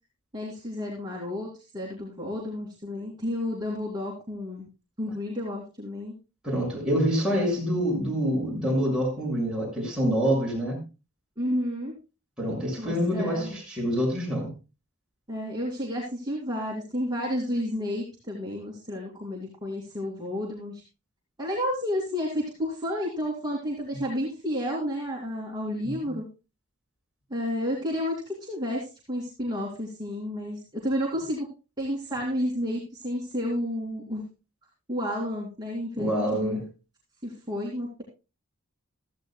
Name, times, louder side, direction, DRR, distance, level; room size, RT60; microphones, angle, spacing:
voice 1, 0.3-4.7 5.0-6.1 11.4-11.9 12.8-13.5 15.3-20.8 21.4-26.2 27.3-31.5 31.8-34.2 34.9-36.6 37.2-38.0, equal, 20° right, -4 dB, 2.7 m, -31 dB
voice 2, 6.4-10.8 12.4-14.5 26.0-26.1 36.0-36.7, equal, 5° right, -3 dB, 6.2 m, -26 dB
15.5 x 14.0 x 2.3 m, 0.29 s
head